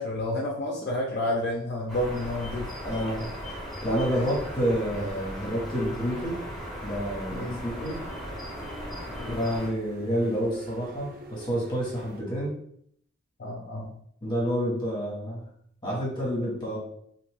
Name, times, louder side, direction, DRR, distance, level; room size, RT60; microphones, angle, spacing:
voice 1, 0.0-3.0 7.3-7.6 9.2-9.4 13.4-13.9, left 1 dB, 55° left, -1 dB, 0.4 m, -30 dB
sound 1, 1.9-9.7, equal, ahead, 1.4 m, -37 dB
voice 2, 2.8-3.3 3.8-6.4 6.8-7.9 9.2-12.5 14.2-15.5 15.8-16.8, equal, 20° left, -5 dB, 1.1 m, -29 dB
sound 2, 7.1-12.2, right 1 dB, 45° right, 0.3 m, -46 dB
2.6 x 2.5 x 3.3 m, 0.68 s
head